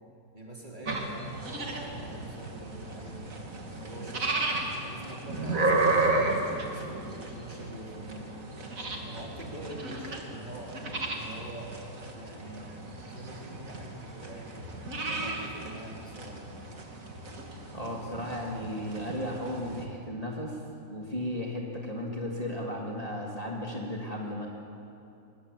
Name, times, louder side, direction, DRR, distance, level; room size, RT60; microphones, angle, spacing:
voice 1, 0.3-4.3 4.7-8.4 9.0-11.7 12.1-14.8 15.1-16.5, right 2 dB, 25° right, -2 dB, 3.8 m, -45 dB
sound 1, 0.9-19.8, right 2 dB, 50° right, 2.8 m, -34 dB
voice 2, 17.7-20.6 20.9-24.5, left 1 dB, 20° left, -2 dB, 2.9 m, -35 dB
22.0 x 21.0 x 8.7 m, 2.6 s
omnidirectional pair, 1.8 m